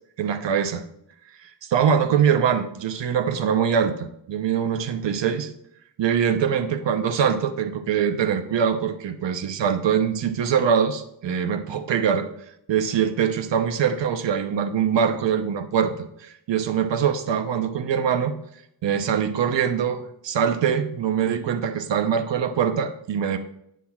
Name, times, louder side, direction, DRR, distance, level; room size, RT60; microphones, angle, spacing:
voice 1, 0.2-0.8 1.4-5.5 6.0-12.3 12.7-18.3 18.8-23.4, right 7 dB, 80° right, 8 dB, 0.7 m, -23 dB
8.2 x 7.0 x 2.3 m, 0.77 s
wide cardioid pair, 115°, 43 cm